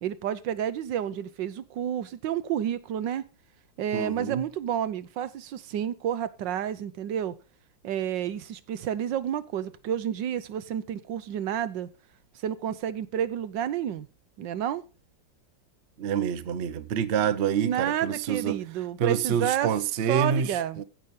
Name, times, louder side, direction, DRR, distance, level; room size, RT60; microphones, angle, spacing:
voice 1, 0.0-3.2 3.8-7.4 7.8-11.9 12.4-14.1 14.4-14.8 17.6-19.7 20.1-20.8, right 10 dB, 75° right, 1.5 m, -30 dB
voice 2, 3.9-4.4 16.0-18.6 19.0-20.8, right 8 dB, 50° right, 0.8 m, -27 dB
15.5 x 6.2 x 5.4 m
omnidirectional pair, 2.0 m